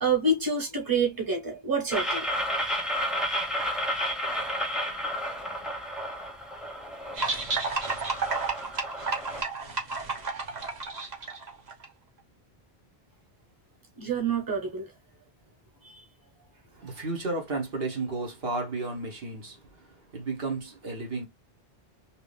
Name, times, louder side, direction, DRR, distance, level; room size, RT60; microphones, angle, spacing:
voice 1, 0.0-2.2 14.0-14.9 15.8-16.0, right 3 dB, 20° right, 1.3 m, -27 dB
sound 1, 1.9-9.4, equal, ahead, 0.6 m, -32 dB
sound 2, 7.2-11.9, right 4 dB, 40° right, 1.1 m, -31 dB
voice 2, 16.6-21.2, right 3 dB, 65° right, 1.3 m, -33 dB
3.1 x 2.9 x 3.2 m
omnidirectional pair, 1.1 m